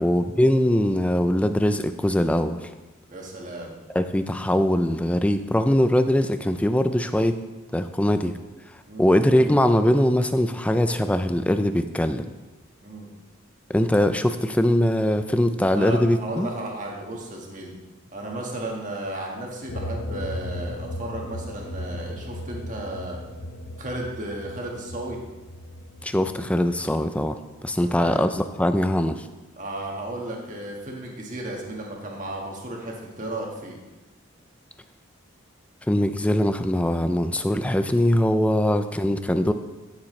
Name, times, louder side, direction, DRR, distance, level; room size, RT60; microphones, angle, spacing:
voice 1, 0.0-2.7 3.9-7.4 7.7-8.4 9.0-12.3 13.7-16.5 26.0-27.4 27.6-29.3 35.9-39.5, left 1 dB, 5° left, 9 dB, 0.4 m, -22 dB
voice 2, 3.1-3.8 7.9-8.1 8.9-9.1 12.8-13.1 15.7-17.7 18.1-23.2 23.8-25.2 27.6-28.3 29.6-33.8 38.5-38.6, right 1 dB, 40° right, -1 dB, 1.6 m, -34 dB
sound 1, 19.7-26.6, left 1 dB, 75° left, 0.7 m, -36 dB
13.0 x 7.3 x 3.2 m, 1.1 s
head